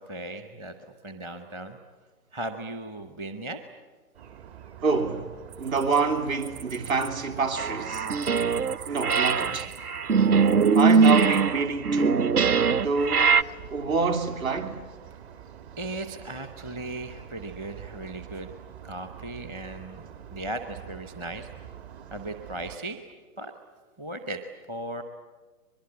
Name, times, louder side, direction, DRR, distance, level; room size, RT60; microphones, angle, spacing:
voice 1, 0.0-1.8 2.3-3.6 15.8-18.5 18.8-21.5 22.1-23.0 23.4-23.5 24.0-24.4 24.7-25.0, right 2 dB, 15° right, 0.8 m, -37 dB
sound 1, 4.1-22.8, right 9 dB, 45° right, 2.5 m, -46 dB
voice 2, 4.8-8.1 8.9-9.7 10.7-12.3 12.7-13.4 13.7-14.8, right 4 dB, 65° right, 2.9 m, -27 dB
sound 2, 5.5-7.1 7.4-10.0 10.4-11.4, right 9 dB, 30° right, 1.7 m, -44 dB
sound 3, 7.6-8.8 9.0-13.4, right 5 dB, 80° right, 0.9 m, -21 dB
23.0 x 22.5 x 9.6 m
hypercardioid pair, 145°, 45 cm